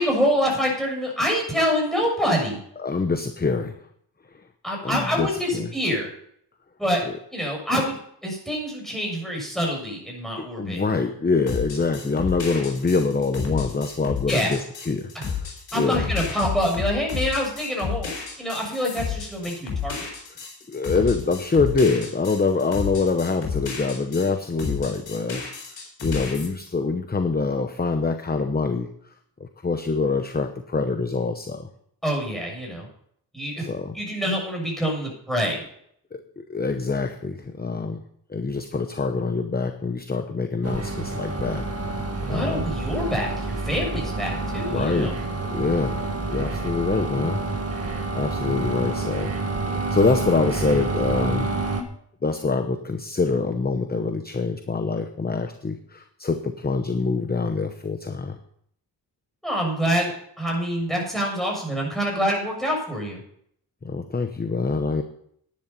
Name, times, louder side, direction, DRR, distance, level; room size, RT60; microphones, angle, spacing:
voice 1, 0.0-2.6 4.6-6.1 6.8-7.0 7.3-10.8 14.3-14.5 15.7-18.1 18.4-20.1 32.0-32.9 33.3-33.6 33.9-35.6 42.2-45.1 59.4-60.1 60.4-63.2, equal, ahead, -1 dB, 6.7 m, -26 dB
voice 2, 2.8-3.8 4.8-5.7 7.1-7.2 10.4-16.1 20.7-25.4 26.0-28.9 29.4-31.7 33.6-34.0 36.1-38.0 38.3-42.7 44.7-46.0 46.3-47.4 48.1-49.3 49.7-51.5 52.2-58.4 63.8-65.0, left 4 dB, 20° left, 8 dB, 0.9 m, -25 dB
sound 1, 11.5-24.3 24.6-26.5, left 6 dB, 85° left, 4.5 m, -31 dB
sound 2, 40.6-51.8, right 3 dB, 35° right, 1.8 m, -28 dB
11.0 x 10.5 x 5.4 m, 0.68 s
cardioid pair, 85°, 42 cm